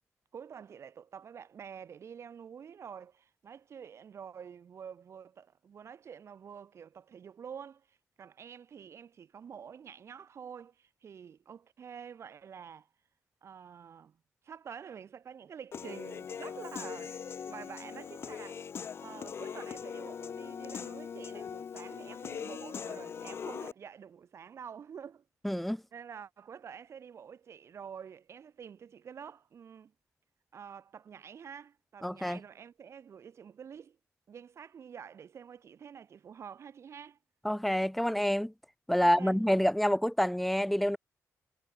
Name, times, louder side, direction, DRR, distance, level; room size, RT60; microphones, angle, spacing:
voice 1, 0.3-12.9 13.4-14.2 14.4-17.2 17.5-18.7 19.0-25.2 25.9-29.9 30.5-34.0 34.3-37.2 39.0-39.4, right 7 dB, 55° right, 4.7 m, -48 dB
Human voice / Piano, 15.7-23.7, left 7 dB, 45° left, 0.7 m, -41 dB
voice 2, 25.4-25.8 32.0-32.4 37.4-38.5 38.9-41.0, equal, ahead, 1.2 m, -27 dB
wide cardioid pair, 160°, 6 cm